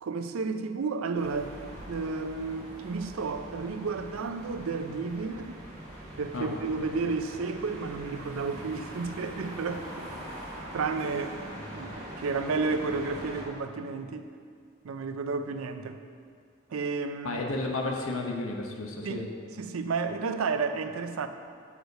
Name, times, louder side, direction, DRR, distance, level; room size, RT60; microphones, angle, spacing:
voice 1, 0.0-1.6 1.9-5.6 6.2-9.9 10.7-11.4 11.7-14.3 14.8-16.0 16.7-17.4 19.0-19.3 19.6-21.3, right 4 dB, 70° right, 8 dB, 0.4 m, -32 dB
sound 1, 1.1-13.4, equal, 30° right, 1.9 m, -42 dB
voice 2, 17.2-19.3, left 2 dB, 70° left, 1 dB, 0.8 m, -32 dB
6.3 x 4.9 x 6.5 m, 2.1 s
head